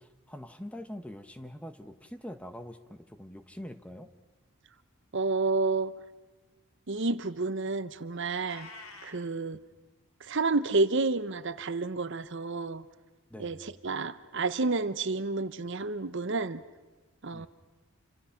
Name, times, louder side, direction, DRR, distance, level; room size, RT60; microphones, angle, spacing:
voice 1, 0.0-4.1 13.3-13.7 17.3-17.5, equal, 5° left, 9 dB, 0.9 m, -44 dB
voice 2, 5.1-5.9 6.9-8.7 9.0-9.6 10.2-12.9 13.4-16.6 17.2-17.5, right 3 dB, 55° right, 14 dB, 0.9 m, -30 dB
Meow, 8.4-9.2, left 3 dB, 75° left, 2.7 m, -47 dB
28.0 x 26.0 x 5.8 m, 1.2 s
head